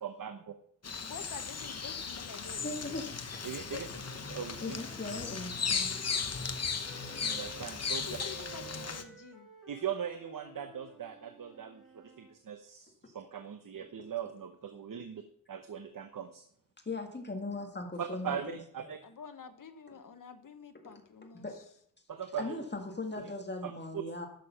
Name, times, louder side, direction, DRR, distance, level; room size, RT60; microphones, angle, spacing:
voice 1, 0.0-0.5 3.4-3.9 4.3-4.8 7.2-8.2 9.7-15.2 15.5-16.4 18.0-19.0 22.1-22.6 23.2-23.3 23.6-24.0, right 8 dB, 75° right, 8 dB, 0.9 m, -40 dB
Bird vocalization bird call bird song, 0.8-9.0, left 5 dB, 50° left, 1.0 m, -36 dB
voice 2, 1.0-3.0 3.7-3.8 8.1-9.5 19.0-21.5, left 6 dB, 75° left, 7 dB, 1.2 m, -48 dB
voice 3, 2.6-3.1 4.6-5.9 16.9-18.6 21.3-21.5 22.4-24.3, left 2 dB, 30° left, 3 dB, 1.9 m, -38 dB
sound 1, 3.5-7.6 8.1-12.4, right 4 dB, ahead, 3.3 m, -54 dB
11.5 x 6.9 x 5.6 m, 0.67 s
wide cardioid pair, 125°, 33 cm